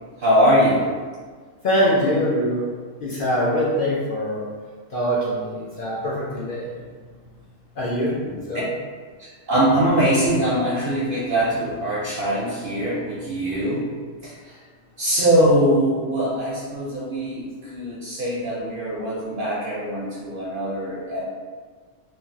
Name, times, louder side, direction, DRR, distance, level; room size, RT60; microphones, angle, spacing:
voice 1, 0.2-0.9 8.2-8.4 9.2-13.9 14.2-14.6 15.0-21.3, right 1 dB, 60° right, -6 dB, 0.6 m, -22 dB
voice 2, 1.6-2.7 3.0-4.5 4.9-6.7 7.8-8.2 8.5-8.7, equal, 60° left, -7 dB, 0.6 m, -23 dB
3.1 x 2.3 x 2.6 m, 1.5 s
omnidirectional pair, 1.3 m